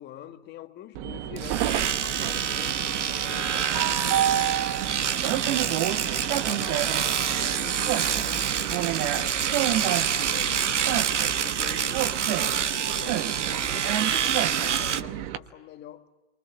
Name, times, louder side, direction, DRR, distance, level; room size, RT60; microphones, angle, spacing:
voice 1, 0.0-4.6 5.1-10.8 11.3-16.1, left 11 dB, 30° left, 1.7 m, -45 dB
Train, 0.9-15.4, right 12 dB, 40° right, 1.3 m, -30 dB
Domestic sounds home sounds, 1.4-15.0, right 8 dB, 85° right, 1.1 m, -27 dB
sound 1, 3.5-14.5, right 8 dB, 60° right, 2.4 m, -49 dB
29.5 x 24.0 x 7.1 m
hypercardioid pair, 120°, 35 cm